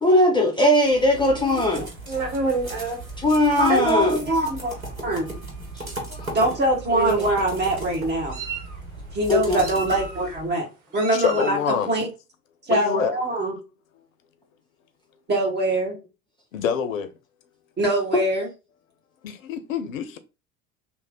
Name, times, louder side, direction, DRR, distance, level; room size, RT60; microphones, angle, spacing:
voice 1, 0.0-1.8 3.2-4.2 6.1-6.4 9.3-9.6, left 1 dB, 10° left, 0.6 m, -19 dB
sound 1, 0.8-10.5, right 2 dB, 90° right, 1.0 m, -37 dB
Meow, 1.3-3.0 3.6-3.9 4.7-4.8 5.2-5.4 6.4-6.5 6.9-7.4 8.0-8.8 9.6-10.3 10.9-11.6, right 3 dB, 50° right, 1.1 m, -29 dB
voice 2, 3.6-4.7 5.0-5.3 6.3-8.4 9.1-10.7 10.9-12.1 12.7-13.6 15.3-15.9 17.8-18.5, right 1 dB, 25° right, 1.3 m, -23 dB
voice 3, 11.2-11.9 12.7-13.1 16.5-17.1 19.2-20.2, left 7 dB, 75° left, 0.5 m, -26 dB
3.1 x 2.1 x 3.6 m
figure-of-eight pair, 65°, 41 cm